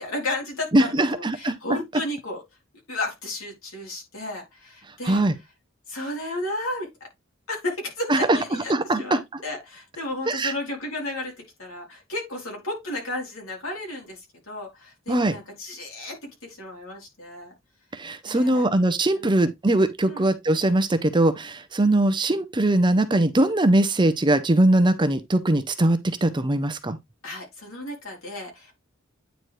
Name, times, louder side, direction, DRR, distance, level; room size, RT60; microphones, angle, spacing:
voice 1, 0.0-2.4 2.9-5.2 5.9-7.1 7.5-17.5 18.2-18.7 19.1-19.3 20.0-20.3 27.2-28.7, left 1 dB, 85° left, 3.6 m, -33 dB
voice 2, 0.7-1.5 5.1-5.3 8.1-8.4 8.7-9.2 10.3-10.5 15.1-15.4 18.0-27.0, right 1 dB, 20° right, 0.6 m, -21 dB
9.2 x 4.0 x 3.2 m
head